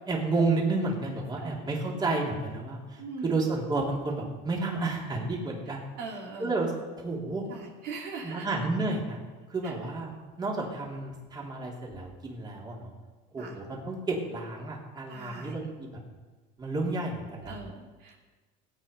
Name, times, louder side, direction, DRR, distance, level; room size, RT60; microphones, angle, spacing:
voice 1, 0.1-5.8 6.4-7.4 8.2-9.2 9.5-10.1 10.4-12.9 13.3-16.0 16.6-17.6, right 3 dB, 25° right, -2 dB, 3.3 m, -31 dB
voice 2, 3.0-3.4 5.9-6.5 7.5-8.5 9.6-9.7 13.4-13.6 15.1-15.5 17.4-18.2, right 4 dB, 65° right, -1 dB, 2.9 m, -41 dB
17.5 x 9.0 x 5.5 m, 1.3 s
supercardioid pair, 115°, 18 cm